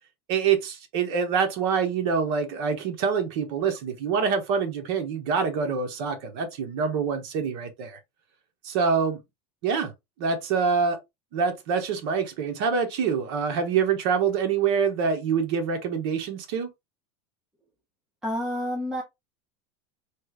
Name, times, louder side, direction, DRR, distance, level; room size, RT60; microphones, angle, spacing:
voice 1, 0.3-8.0 8.6-9.2 9.6-9.9 10.2-11.0 11.3-16.7, right 6 dB, 60° right, 1.0 m, -25 dB
voice 2, 18.2-19.0, equal, 5° right, 0.7 m, -29 dB
3.1 x 2.4 x 3.2 m
supercardioid pair, 165°, 15 cm